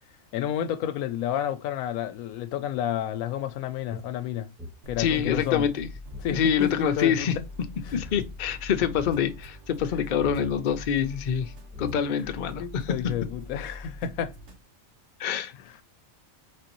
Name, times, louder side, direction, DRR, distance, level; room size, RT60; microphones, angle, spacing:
voice 1, 0.3-4.5 4.9-5.7 6.2-7.3 12.6-14.3, left 10 dB, 85° left, 1.0 m, -30 dB
sound 1, 3.9-6.3 6.6-6.7 7.0-7.3 7.9-8.3 8.7-9.2 10.2-10.6 11.4-11.5 11.7-12.3, left 2 dB, ahead, 0.5 m, -41 dB
sound 2, 4.8-14.6, left 2 dB, 60° right, 1.3 m, -43 dB
voice 2, 5.0-5.9 6.3-7.4 7.9-11.5 11.8-12.9 15.2-15.5, left 8 dB, 60° left, 0.5 m, -26 dB
4.1 x 3.2 x 2.9 m
omnidirectional pair, 1.5 m